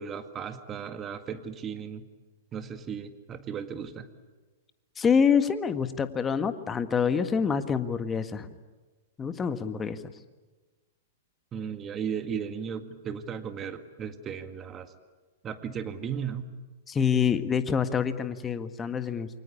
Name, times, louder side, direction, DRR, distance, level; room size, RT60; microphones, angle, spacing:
voice 1, 0.0-2.0 2.5-4.1 11.5-14.9 15.4-16.5, right 7 dB, 25° right, 9 dB, 2.0 m, -36 dB
voice 2, 5.0-8.5 9.2-10.0 16.9-19.3, left 6 dB, 20° left, 10 dB, 1.6 m, -26 dB
28.5 x 24.0 x 8.6 m, 1.3 s
figure-of-eight pair, 110°, 0 cm